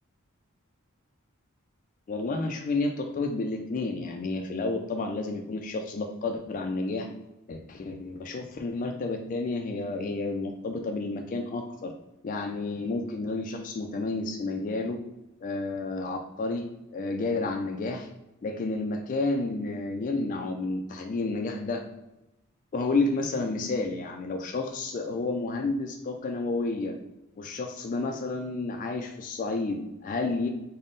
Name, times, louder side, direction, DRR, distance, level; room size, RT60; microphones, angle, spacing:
voice 1, 2.1-7.1 7.5-11.9 12.2-15.0 15.4-18.1 18.4-21.8 22.7-26.9 27.4-30.5, left 3 dB, 40° left, 3 dB, 0.3 m, -30 dB
3.6 x 2.1 x 3.8 m, 0.91 s
head